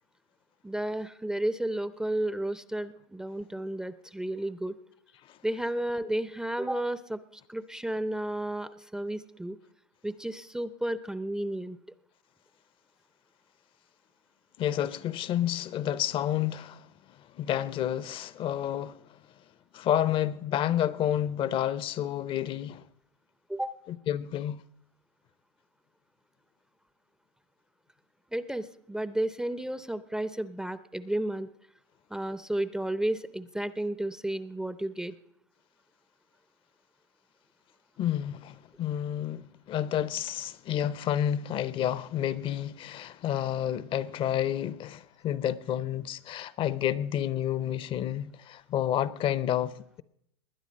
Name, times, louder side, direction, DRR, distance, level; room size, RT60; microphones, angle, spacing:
voice 1, 0.6-4.7 5.4-7.2 7.5-9.6 10.0-11.8 23.5-23.7 28.3-31.5 32.1-35.1, right 1 dB, 5° right, 0.5 m, -32 dB
voice 2, 14.6-16.9 17.3-19.2 19.7-22.8 23.9-24.6 38.0-50.0, left 11 dB, 35° left, 0.7 m, -30 dB
20.0 x 9.6 x 5.2 m
hypercardioid pair, 110°, 15 cm